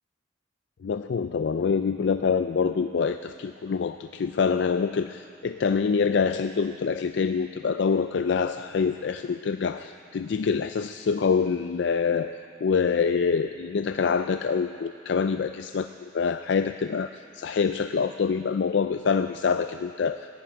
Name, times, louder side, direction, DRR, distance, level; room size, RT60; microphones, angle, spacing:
voice 1, 0.8-15.9 16.1-20.3, left 5 dB, 65° left, 9 dB, 0.4 m, -26 dB
14.5 x 11.0 x 8.7 m, 2.6 s
head